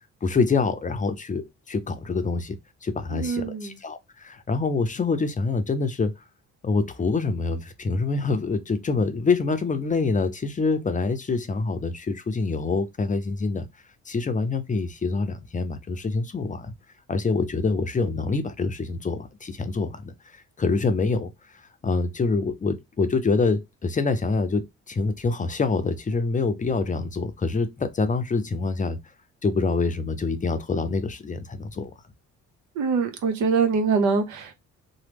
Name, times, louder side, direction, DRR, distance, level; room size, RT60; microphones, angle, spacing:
voice 1, 0.2-2.6 2.8-6.1 6.6-13.7 14.1-16.7 17.1-21.3 21.8-29.0 29.4-31.9, left 4 dB, 25° left, 0.5 m, -26 dB
voice 2, 3.1-3.8 32.7-34.5, right 5 dB, 80° right, 0.8 m, -24 dB
3.0 x 2.1 x 3.4 m
cardioid pair, 90°, 30 cm